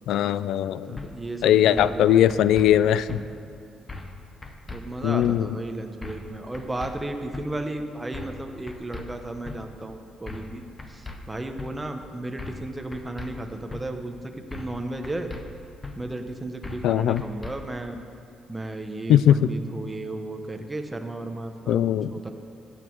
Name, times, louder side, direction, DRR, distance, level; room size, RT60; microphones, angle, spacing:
voice 1, 0.1-0.9 1.4-3.2 5.0-5.5 16.8-17.2 19.1-19.5 21.7-22.1, left 11 dB, 85° left, 16 dB, 0.3 m, -20 dB
voice 2, 0.9-3.3 4.7-10.6 10.9-15.3 16.0-18.0 18.5-21.8 22.1-22.3, right 2 dB, 15° right, 5 dB, 0.9 m, -34 dB
sound 1, 1.0-1.1 1.8-2.0 2.3-2.7 3.1-3.2 3.9-4.2 4.4-4.8 5.2-5.3 6.0-6.3 6.5-6.9 7.3-7.5 8.1-8.4 8.7-9.0 9.4-9.6 10.3-10.5 10.8-11.2 11.6-11.7 12.4-12.7 12.9-13.3 13.7-13.8 14.5-14.8 15.0-15.4 15.8-15.9 16.6-16.9 17.2-17.5, left 3 dB, 20° left, 0.9 m, -38 dB
14.5 x 8.4 x 4.6 m, 2.4 s
cardioid pair, 120°, 0 cm